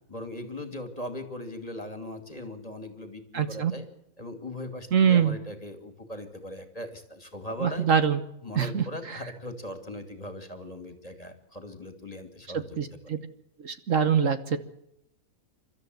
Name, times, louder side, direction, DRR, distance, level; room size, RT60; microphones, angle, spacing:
voice 1, 0.1-3.8 4.2-7.9 8.4-12.8, left 1 dB, 25° left, 7 dB, 2.7 m, -39 dB
voice 2, 3.3-3.7 4.9-5.4 7.6-8.2 8.5-9.2 12.8-13.2 13.6-14.6, right 7 dB, 60° right, 10 dB, 1.4 m, -24 dB
29.5 x 13.0 x 7.9 m, 0.83 s
omnidirectional pair, 1.5 m